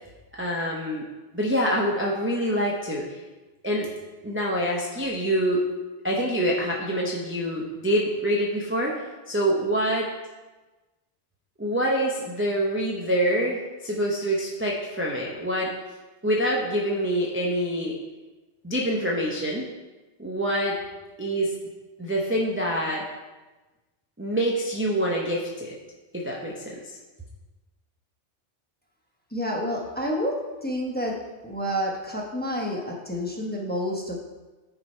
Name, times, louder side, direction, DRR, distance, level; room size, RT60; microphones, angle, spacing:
voice 1, 0.4-1.0 1.3-3.2 3.6-3.9 4.2-5.6 6.0-8.9 9.3-10.1 11.6-15.7 16.2-18.0 18.6-19.7 20.2-20.8 21.2-21.5 22.0-23.0 24.2-25.8 26.1-27.0, equal, 10° right, -3 dB, 0.8 m, -26 dB
voice 2, 29.3-31.2 31.4-34.2, equal, 10° left, -1 dB, 1.0 m, -29 dB
9.7 x 4.9 x 4.4 m, 1.2 s
omnidirectional pair, 1.2 m